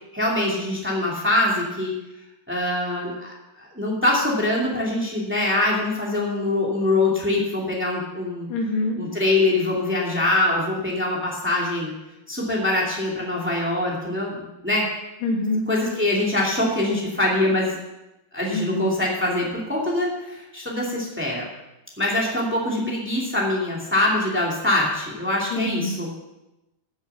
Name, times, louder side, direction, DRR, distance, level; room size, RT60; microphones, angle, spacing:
voice 1, 0.1-2.0 2.5-8.5 8.9-11.9 12.3-14.9 15.7-17.8 18.3-21.5 22.0-26.1, left 2 dB, 5° right, -3 dB, 1.5 m, -23 dB
voice 2, 8.5-9.0 15.2-15.7 18.5-18.9 25.5-25.9, left 2 dB, 80° left, 0 dB, 4.3 m, -25 dB
15.0 x 7.3 x 5.7 m, 0.96 s
omnidirectional pair, 4.7 m